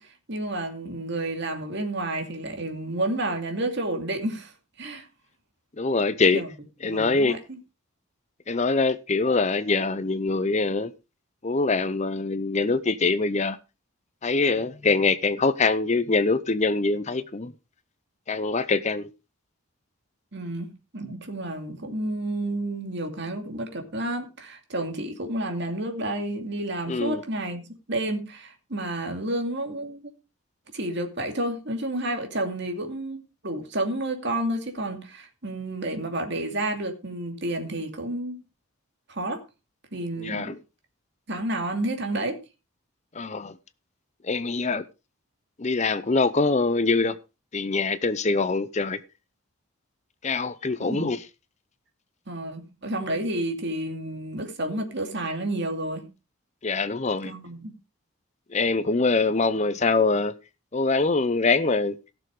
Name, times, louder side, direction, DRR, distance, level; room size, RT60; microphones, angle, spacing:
voice 1, 0.0-4.5 4.8-5.1 6.3-6.5 6.8-7.6 20.3-30.0 30.7-38.4 39.1-39.4 39.9-40.6 41.3-42.4 50.8-51.1 52.3-56.1 57.2-57.7, right 1 dB, 55° right, 2.5 m, -30 dB
voice 2, 5.8-6.4 6.8-7.4 8.5-10.9 11.4-13.6 14.2-17.5 18.3-19.1 26.9-27.2 40.2-40.6 43.1-43.5 44.2-44.8 45.6-47.2 47.5-49.0 50.2-51.2 56.6-57.3 58.5-60.3 60.7-61.9, left 3 dB, 30° left, 0.6 m, -24 dB
16.5 x 6.9 x 4.9 m
head